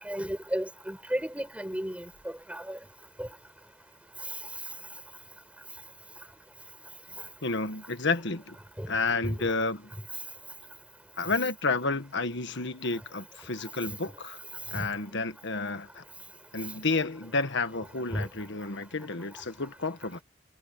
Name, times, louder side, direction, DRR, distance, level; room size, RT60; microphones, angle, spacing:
voice 1, 0.0-2.8 3.2-3.3 8.8-8.9 9.2-9.5 14.7-14.9 18.1-18.3, equal, 5° right, 7.7 m, -33 dB
voice 2, 7.4-8.6 8.9-9.9 11.2-14.4 14.7-16.0 16.5-20.2, left 3 dB, 65° left, 1.6 m, -31 dB
head